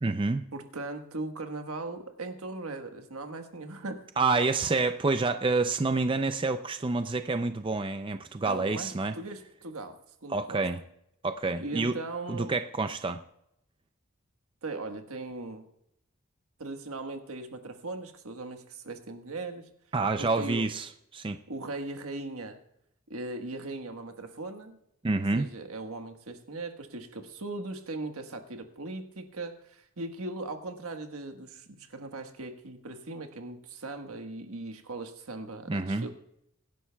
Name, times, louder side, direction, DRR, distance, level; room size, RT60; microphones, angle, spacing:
voice 1, 0.0-0.4 4.2-9.1 10.3-10.8 11.2-12.0 12.3-13.2 19.9-21.4 25.0-25.5 35.7-36.1, right 3 dB, 25° right, 9 dB, 0.4 m, -28 dB
voice 2, 0.5-4.1 8.4-10.6 11.6-12.5 14.6-15.7 16.6-19.7 20.2-20.7 21.5-22.6 23.1-24.8 25.3-36.1, right 2 dB, 80° right, 6 dB, 1.4 m, -39 dB
23.5 x 11.0 x 2.3 m, 0.78 s
head